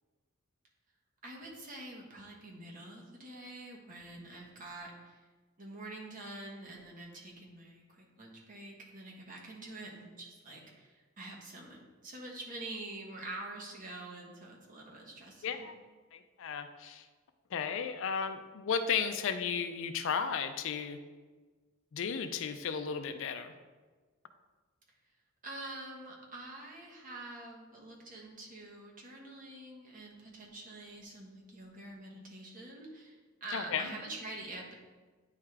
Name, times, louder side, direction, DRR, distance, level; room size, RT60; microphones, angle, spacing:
voice 1, 1.2-5.2 5.6-15.7 25.4-34.7, right 2 dB, 40° right, -1 dB, 1.2 m, -46 dB
voice 2, 15.4-15.8 16.1-17.1 17.5-21.0 21.9-23.5 33.5-33.9, left 6 dB, 65° left, 8 dB, 0.4 m, -34 dB
9.3 x 3.6 x 3.3 m, 1.3 s
head